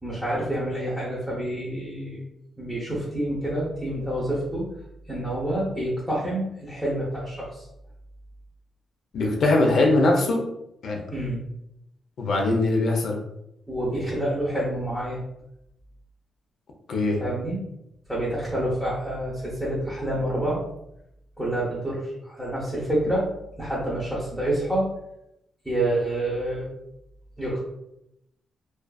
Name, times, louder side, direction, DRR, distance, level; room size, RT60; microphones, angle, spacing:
voice 1, 0.0-2.2 2.6-4.6 5.1-7.6 11.1-11.4 13.7-15.2 17.2-17.6 18.1-20.6 21.4-23.3 23.6-24.9 25.6-26.7 27.4-27.6, right 1 dB, ahead, -8 dB, 0.7 m, -28 dB
voice 2, 9.1-10.4 10.8-11.0 12.2-13.1 16.9-17.2, left 2 dB, 65° left, 1 dB, 0.5 m, -21 dB
2.4 x 2.4 x 2.3 m, 0.82 s
cardioid pair, 135°, 0 cm